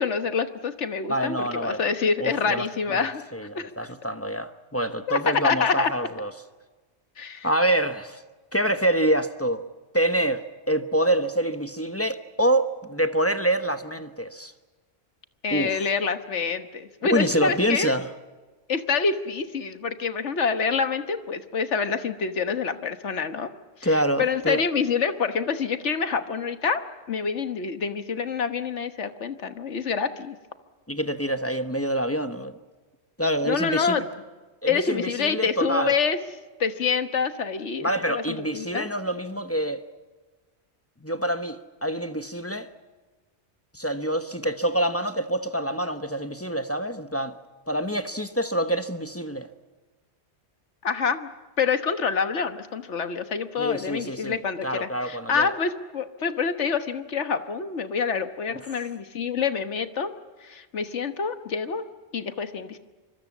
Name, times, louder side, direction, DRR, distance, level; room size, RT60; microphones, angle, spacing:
voice 1, 0.0-3.2 3.5-3.7 5.1-5.2 5.4-5.9 7.2-7.5 15.4-17.9 18.7-23.5 23.8-30.4 33.4-34.0 34.7-36.2 36.6-38.9 50.8-51.3 51.6-60.1 60.4-61.8 62.1-62.8, left 5 dB, 85° left, 1.6 m, -27 dB
voice 2, 1.1-1.8 2.2-6.3 7.4-8.2 8.5-9.6 9.9-14.5 15.5-15.8 17.0-18.1 23.8-24.6 30.9-32.6 33.2-34.1 34.6-36.0 37.8-39.9 41.0-42.7 43.7-47.4 47.7-49.5 53.6-55.5 58.5-58.8, right 1 dB, 15° left, 0.9 m, -26 dB
25.0 x 24.5 x 7.3 m
omnidirectional pair, 1.2 m